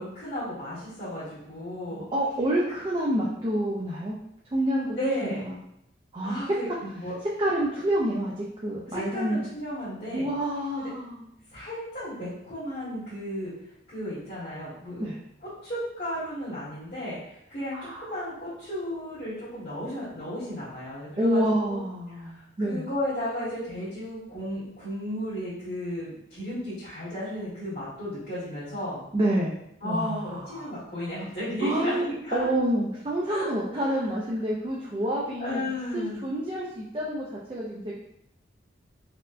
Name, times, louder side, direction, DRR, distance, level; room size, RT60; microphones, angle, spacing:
voice 1, 0.0-2.0 5.0-5.5 6.2-7.1 8.8-10.3 10.8-10.9 11.5-13.5 13.9-15.1 15.6-21.4 21.7-21.8 22.2-29.0 29.8-32.5 33.3-34.0 35.4-36.3, equal, 55° left, -13 dB, 1.4 m, -34 dB
voice 2, 1.9-4.2 4.5-5.0 5.2-5.6 6.1-6.4 7.4-9.4 10.1-11.3 15.0-15.2 17.7-18.1 21.2-22.9 29.1-29.6 29.8-30.7 31.6-35.6 35.9-37.9, right 1 dB, 25° right, -4 dB, 0.4 m, -28 dB
4.2 x 2.1 x 2.5 m, 0.78 s
head